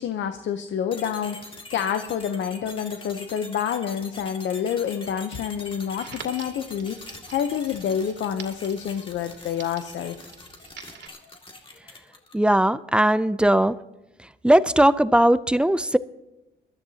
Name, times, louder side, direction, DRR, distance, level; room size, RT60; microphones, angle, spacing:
voice 1, 0.0-10.3, left 8 dB, 70° left, 8 dB, 0.8 m, -28 dB
sound 1, 0.9-12.5, left 2 dB, 25° left, 2.2 m, -43 dB
Crackle, 6.0-11.1, right 6 dB, 60° right, 2.3 m, -46 dB
voice 2, 12.3-13.8 14.4-16.0, right 1 dB, 5° right, 15 dB, 0.5 m, -19 dB
22.0 x 13.0 x 2.8 m, 0.96 s
cardioid pair, 90°, 20 cm